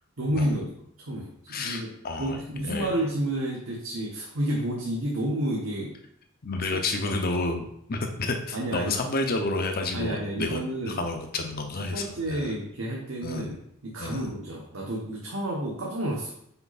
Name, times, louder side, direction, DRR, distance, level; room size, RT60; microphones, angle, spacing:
voice 1, 0.2-0.7 1.0-6.0 6.7-7.2 8.5-9.0 9.9-11.0 11.7-16.3, right 1 dB, 70° right, -2 dB, 1.2 m, -30 dB
voice 2, 1.5-2.9 6.4-12.6 13.2-13.6 14.0-14.3, left 2 dB, 45° left, 5 dB, 0.7 m, -30 dB
5.8 x 5.1 x 4.1 m, 0.73 s
head